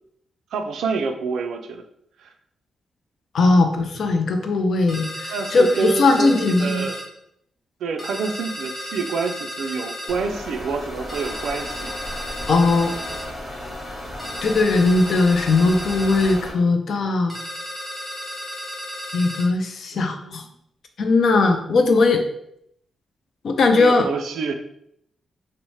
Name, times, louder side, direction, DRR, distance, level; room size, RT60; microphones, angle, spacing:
voice 1, 0.5-1.8 2.2-2.3 5.3-7.1 7.8-11.9 12.3-12.5 19.9-20.5 23.8-24.5, right 4 dB, 85° right, 5 dB, 0.3 m, -27 dB
voice 2, 3.3-6.9 12.5-12.9 14.4-17.4 19.1-20.4 21.0-22.2 23.4-24.1, left 3 dB, 55° left, 6 dB, 0.3 m, -19 dB
sound 1, 4.9-7.1 8.0-10.2 11.1-13.3 14.2-16.4 17.3-19.5, equal, 5° left, 0.6 m, -34 dB
sound 2, 10.1-16.5, left 1 dB, 30° left, 0.8 m, -35 dB
2.7 x 2.0 x 3.0 m, 0.74 s
wide cardioid pair, 150°, 0 cm